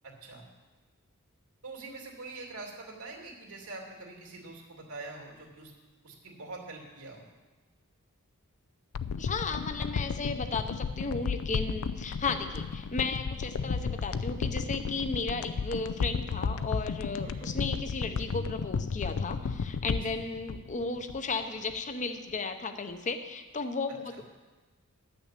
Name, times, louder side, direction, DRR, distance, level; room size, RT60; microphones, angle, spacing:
voice 1, 0.0-0.5 1.6-5.7 6.0-7.3 17.2-17.5 19.9-20.2 24.1-24.2, right 3 dB, 85° right, 0 dB, 2.6 m, -44 dB
sound 1, 8.9-21.4 21.7-21.8, left 5 dB, 70° left, 0.4 m, -33 dB
voice 2, 9.2-24.2, left 4 dB, 35° left, 8 dB, 0.8 m, -34 dB
11.5 x 6.2 x 8.3 m, 1.3 s
head